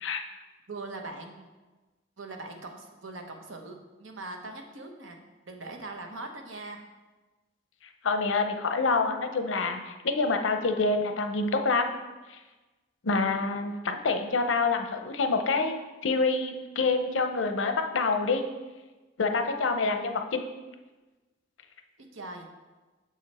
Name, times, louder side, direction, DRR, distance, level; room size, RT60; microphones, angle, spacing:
voice 1, 0.7-1.5 2.2-5.2 5.5-6.8 22.1-22.5, right 2 dB, 90° right, 3 dB, 0.9 m, -41 dB
voice 2, 8.0-11.9 12.3-12.4 13.0-15.8 16.0-18.4 19.2-20.4, left 3 dB, 75° left, 6 dB, 0.7 m, -27 dB
7.0 x 5.0 x 4.2 m, 1.2 s
head